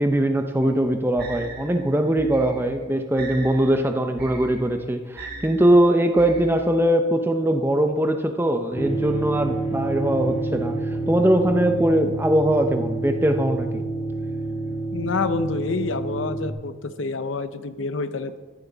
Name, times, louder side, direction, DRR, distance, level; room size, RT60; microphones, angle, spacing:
voice 1, 0.0-10.8 11.1-13.8, right 1 dB, 10° right, 6 dB, 0.7 m, -21 dB
sound 1, 0.6-6.9, right 2 dB, 50° right, 1.6 m, -40 dB
sound 2, 8.8-16.5, right 2 dB, 35° left, 1.3 m, -28 dB
voice 2, 14.9-18.4, left 4 dB, 80° left, 12 dB, 0.7 m, -28 dB
14.0 x 10.5 x 4.0 m, 1.4 s
head